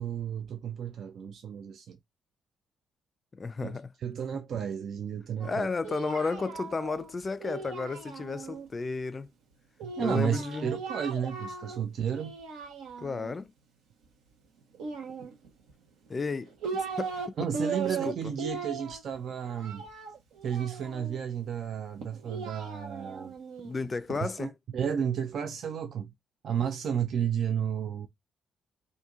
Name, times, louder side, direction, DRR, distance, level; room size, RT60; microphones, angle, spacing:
voice 1, 0.0-2.0 3.6-5.7 9.8-12.3 17.4-19.9 20.4-23.3 24.2-26.1 26.4-28.1, right 8 dB, 65° right, 0.4 m, -32 dB
voice 2, 3.3-3.9 5.4-9.3 10.0-10.7 13.0-13.5 16.1-17.1 17.4-17.5 17.8-18.3 23.6-24.5, left 4 dB, 35° left, 0.4 m, -33 dB
Singing, 5.4-8.7 9.8-11.8 12.1-13.3 14.7-15.7 16.3-17.3 17.5-21.2 22.0-24.2, right 5 dB, 90° right, 0.9 m, -38 dB
2.9 x 2.6 x 3.5 m
supercardioid pair, 65°, 0 cm